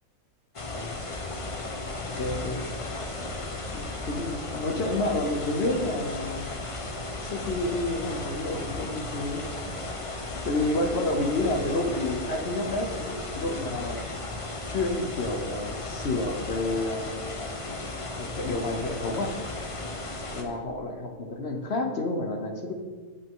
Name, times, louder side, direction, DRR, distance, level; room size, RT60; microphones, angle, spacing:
sound 1, 0.5-20.4, left 2 dB, 30° left, 0.7 m, -35 dB
voice 1, 0.7-1.1 2.1-2.6 3.7-6.5 7.2-9.5 10.4-14.0 14.7-17.3 18.2-19.3 20.3-22.7, left 2 dB, 50° left, 4 dB, 1.0 m, -29 dB
8.4 x 8.2 x 3.8 m, 1.5 s
omnidirectional pair, 1.5 m